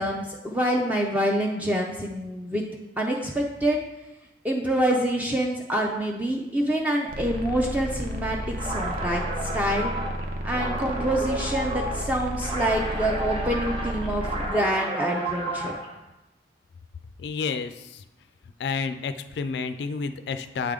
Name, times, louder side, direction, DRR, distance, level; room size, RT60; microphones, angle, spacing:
voice 1, 0.0-2.6 3.0-3.8 4.4-9.9 10.4-15.8, right 1 dB, 10° right, -1 dB, 0.4 m, -26 dB
sound 1, 7.1-14.5, equal, 55° right, 0.6 m, -33 dB
sound 2, 8.5-15.9, right 1 dB, 30° right, 0.9 m, -32 dB
voice 2, 17.2-18.0 18.6-20.7, left 5 dB, 65° left, 10 dB, 0.3 m, -30 dB
8.2 x 3.4 x 3.6 m, 0.98 s
head